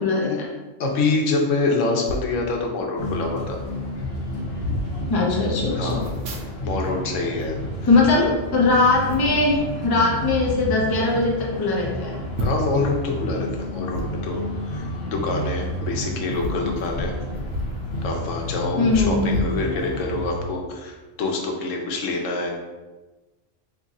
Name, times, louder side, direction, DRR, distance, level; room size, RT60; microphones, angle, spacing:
voice 1, 0.0-0.4 5.1-6.0 7.9-12.1 18.8-19.5, left 3 dB, 30° left, -3 dB, 0.4 m, -20 dB
voice 2, 0.8-3.6 5.7-6.1 6.6-7.6 8.1-8.3 12.4-14.4 14.7-17.1 18.0-22.5, left 3 dB, 80° left, 1 dB, 1.0 m, -26 dB
sound 1, 2.0-2.3 3.2-3.3 3.5-3.7 4.3-4.9 5.9-6.9 7.2-8.6 9.1-9.4 10.2-10.6 11.1-11.2 11.5-11.6 12.3-12.8 13.9-14.1 15.5-15.7 16.3-17.8 18.1-18.2 18.9-20.1 20.6-20.7, equal, 75° right, 1.0 m, -31 dB
sound 2, 3.0-20.3, left 1 dB, 55° left, 0.9 m, -31 dB
2.9 x 2.4 x 4.0 m, 1.2 s
omnidirectional pair, 1.3 m